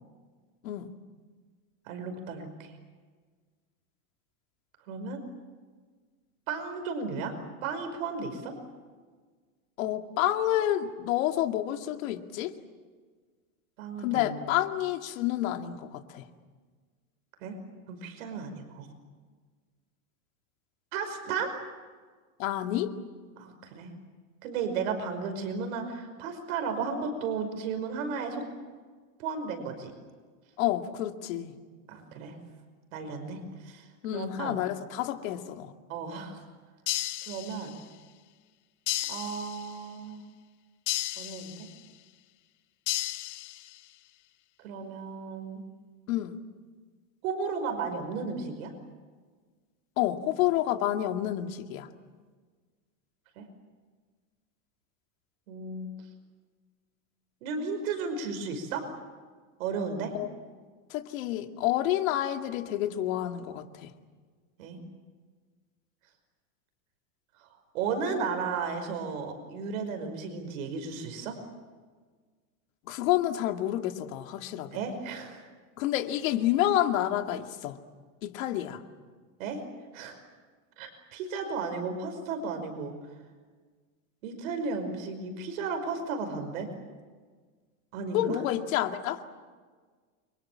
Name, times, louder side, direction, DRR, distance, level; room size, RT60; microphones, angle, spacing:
voice 1, 1.9-2.7 4.9-5.2 6.5-7.3 7.6-8.5 13.8-14.4 17.4-17.6 17.9-18.9 20.9-21.5 23.4-23.9 24.4-28.4 29.2-29.9 31.9-32.4 32.9-33.9 34.1-34.6 35.9-36.4 37.3-37.7 39.1-40.2 41.2-41.7 44.6-45.6 47.2-48.7 53.4-53.5 55.5-55.9 57.4-58.9 59.6-60.1 64.6-64.8 67.4-67.5 67.7-71.4 74.7-75.4 79.4-79.6 79.9-80.2 80.8-82.9 84.2-86.7 87.9-88.3, right 5 dB, 70° right, 6 dB, 5.4 m, -34 dB
voice 2, 9.8-12.5 14.0-16.2 22.4-22.9 30.6-31.5 34.0-35.7 46.1-46.3 50.0-51.9 60.1-60.3 60.9-63.9 72.9-74.7 75.8-77.8 78.2-78.8 88.1-89.2, left 13 dB, 70° left, 6 dB, 2.4 m, -29 dB
sound 1, 36.9-37.9 38.9-39.9 40.9-41.9 42.9-43.9, left 17 dB, 50° left, 1.5 m, -34 dB
29.5 x 24.5 x 7.5 m, 1.5 s
supercardioid pair, 165°, 42 cm